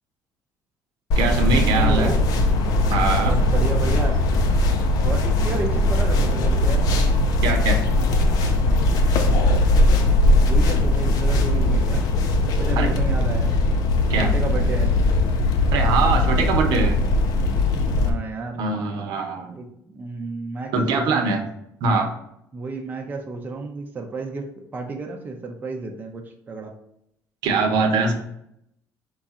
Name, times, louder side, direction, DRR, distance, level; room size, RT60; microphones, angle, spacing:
sound 1, 1.1-18.1, left 2 dB, 65° left, 0.6 m, -19 dB
voice 1, 1.2-2.2 2.9-3.4 7.4-7.8 12.8-12.9 14.1-14.3 15.7-17.0 18.6-19.5 20.7-21.4 21.8-22.1 27.4-28.1, right 4 dB, 85° right, 3 dB, 0.8 m, -22 dB
voice 2, 1.8-2.2 3.2-4.3 5.0-6.9 9.4-9.7 10.2-12.1 12.4-13.6 14.2-15.0 17.9-18.6 19.5-21.3 22.5-26.7, right 3 dB, 25° right, 2 dB, 0.6 m, -32 dB
4.6 x 2.4 x 4.1 m, 0.76 s
cardioid pair, 135°, 7 cm